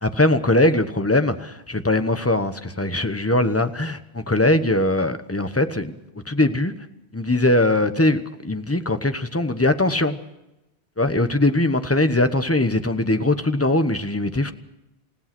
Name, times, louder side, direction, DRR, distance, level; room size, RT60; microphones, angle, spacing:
voice 1, 0.0-5.9 6.3-6.7 7.1-10.2 11.0-14.5, left 2 dB, 15° left, 9 dB, 1.1 m, -21 dB
29.0 x 16.5 x 6.1 m, 0.93 s
omnidirectional pair, 1.1 m